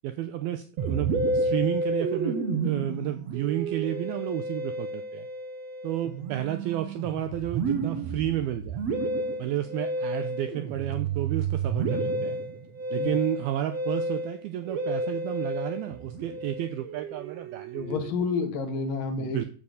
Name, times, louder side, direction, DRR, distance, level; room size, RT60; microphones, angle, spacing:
voice 1, 0.0-5.3 5.8-8.8 9.4-12.4 12.9-17.9 19.1-19.5, right 12 dB, 90° right, 9 dB, 2.2 m, -31 dB
Musical instrument, 0.8-18.4, right 3 dB, 65° right, 1.7 m, -31 dB
voice 2, 17.7-19.5, left 4 dB, 60° left, 5 dB, 2.9 m, -29 dB
14.0 x 7.4 x 6.5 m, 0.42 s
omnidirectional pair, 5.2 m